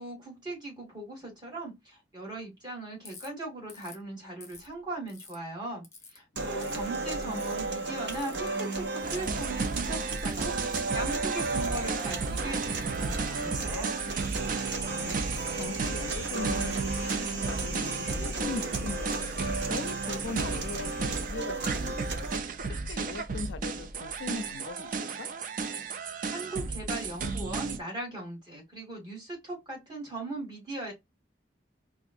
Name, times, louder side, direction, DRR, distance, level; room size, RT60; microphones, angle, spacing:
voice 1, 0.0-5.8 6.1-13.9 26.3-30.9, right 2 dB, 25° right, 2.1 m, -39 dB
Ratchet pawl, 3.0-3.3 3.7-4.0 4.4-5.4 5.8-6.2 6.6-6.9 7.3-7.6 8.1-8.3 8.9-9.4 10.2-10.8 11.4-12.2 12.7-13.4 14.2-14.5 15.3-15.5 16.3-17.8, left 4 dB, 15° left, 0.9 m, -51 dB
voice 2, 6.3-7.4 14.8-15.2 15.5-19.3 19.7-22.1 22.6-25.3, left 4 dB, 85° left, 0.4 m, -40 dB
sound 1, 6.4-22.4, right 3 dB, 75° right, 0.9 m, -34 dB
sound 2, 9.0-27.8, right 4 dB, 50° right, 0.4 m, -34 dB
4.7 x 2.5 x 2.5 m
head